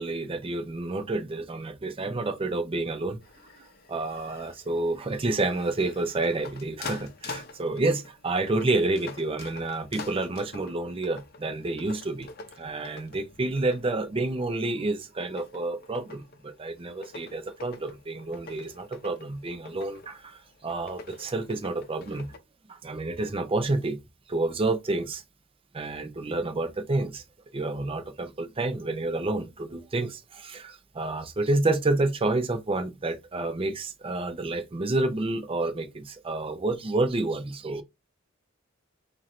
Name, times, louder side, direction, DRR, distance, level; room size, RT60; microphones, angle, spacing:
voice 1, 0.0-3.2 3.9-12.3 12.6-22.3 22.7-24.0 24.3-25.2 25.7-27.2 27.5-37.8, right 2 dB, 30° right, 0.5 m, -29 dB
sound 1, 3.2-22.4, left 4 dB, 50° left, 0.6 m, -46 dB
4.3 x 2.6 x 3.0 m
head